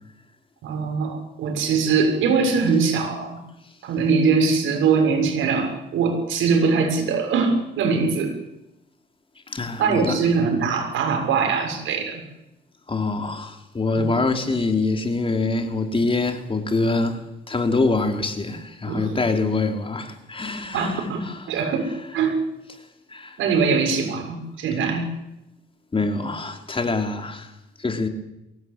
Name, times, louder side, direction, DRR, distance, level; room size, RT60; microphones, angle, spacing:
voice 1, 0.6-3.4 3.8-8.3 9.8-12.2 14.0-14.1 18.9-19.2 20.7-22.3 23.4-25.0, right 5 dB, 80° right, 6.8 m, -22 dB
voice 2, 9.5-10.2 12.9-21.4 23.1-23.4 25.9-27.5 27.8-28.1, left 3 dB, 25° left, 3.3 m, -25 dB
23.5 x 18.0 x 8.7 m
cardioid pair, 90°, 20 cm